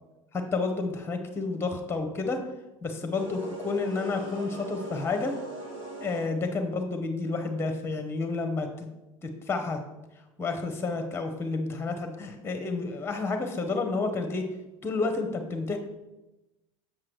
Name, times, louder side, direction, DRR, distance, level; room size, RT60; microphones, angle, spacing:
voice 1, 0.3-2.4 2.8-5.3 6.0-8.9 9.2-9.8 10.4-14.5 14.8-15.8, left 3 dB, 15° left, 5 dB, 1.0 m, -30 dB
sound 1, 3.1-6.6, right 2 dB, 65° right, 2.7 m, -40 dB
7.3 x 6.4 x 3.3 m, 1.0 s
figure-of-eight pair, 65°, 17 cm